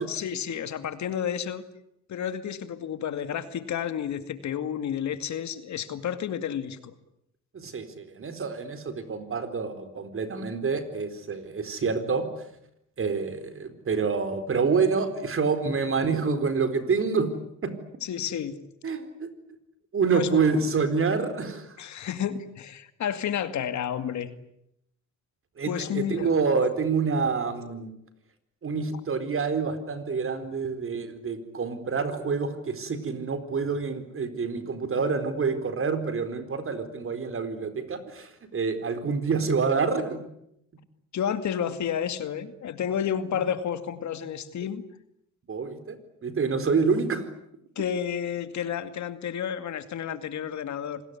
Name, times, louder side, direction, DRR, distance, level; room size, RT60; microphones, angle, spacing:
voice 1, 0.1-1.6 2.1-6.9 18.0-18.6 20.1-20.4 21.8-24.3 25.7-26.4 41.1-44.8 47.8-51.0, left 8 dB, 70° left, 11 dB, 2.3 m, -31 dB
voice 2, 7.5-12.3 13.0-17.3 17.6-17.7 18.8-19.3 19.9-21.8 25.6-27.9 28.6-40.2 45.5-46.0 46.2-47.3, right 5 dB, 45° right, 10 dB, 4.3 m, -27 dB
26.5 x 20.0 x 9.8 m, 0.77 s
cardioid pair, 90°, 30 cm